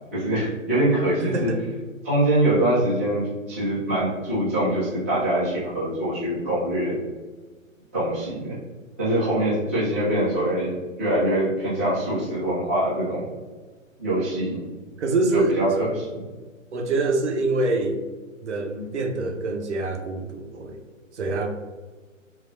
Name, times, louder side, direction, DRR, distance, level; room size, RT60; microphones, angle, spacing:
voice 1, 0.1-1.5 2.0-7.0 7.9-8.5 9.0-10.7 11.0-13.2 14.0-14.6 15.3-16.2, right 1 dB, 10° right, -13 dB, 0.3 m, -24 dB
voice 2, 1.2-1.6 9.2-9.5 15.0-15.6 16.7-18.0 18.4-20.8 21.2-21.5, right 2 dB, 60° right, 3 dB, 0.6 m, -25 dB
3.8 x 2.3 x 2.5 m, 1.3 s
figure-of-eight pair, 125°, 39 cm